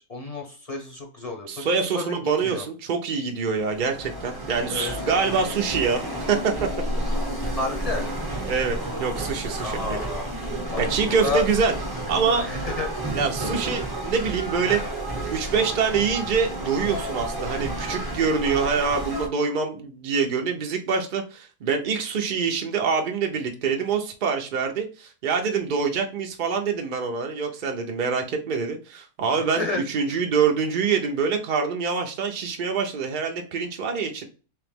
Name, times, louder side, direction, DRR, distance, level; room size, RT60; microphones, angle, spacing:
voice 1, 0.1-2.6 4.7-4.9 7.6-8.1 9.6-10.3 10.7-10.8 11.2-11.5 12.3-12.9 29.4-29.8 30.1-30.2, left 3 dB, 35° left, 1 dB, 0.7 m, -31 dB
voice 2, 1.5-6.7 8.5-10.1 10.8-11.7 12.1-12.5 13.1-14.8 15.3-34.2, right 5 dB, 55° right, 3 dB, 0.5 m, -25 dB
sound 1, 3.5-19.3, right 1 dB, 20° right, 0.7 m, -31 dB
3.3 x 2.9 x 3.4 m, 0.36 s
omnidirectional pair, 1.4 m